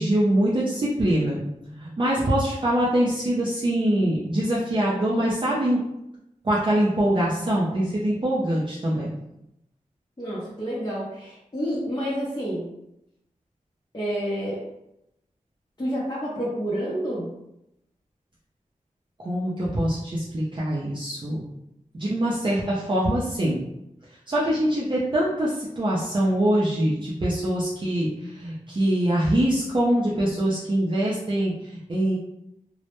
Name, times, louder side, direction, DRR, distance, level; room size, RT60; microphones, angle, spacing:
voice 1, 0.0-5.8 6.4-9.1 19.2-21.5 21.9-23.6 24.3-32.1, right 1 dB, 35° right, -7 dB, 0.4 m, -24 dB
voice 2, 10.2-12.7 13.9-14.6 15.8-17.3, equal, 30° left, -8 dB, 0.6 m, -29 dB
2.1 x 2.0 x 2.9 m, 0.84 s
wide cardioid pair, 90°, 14 cm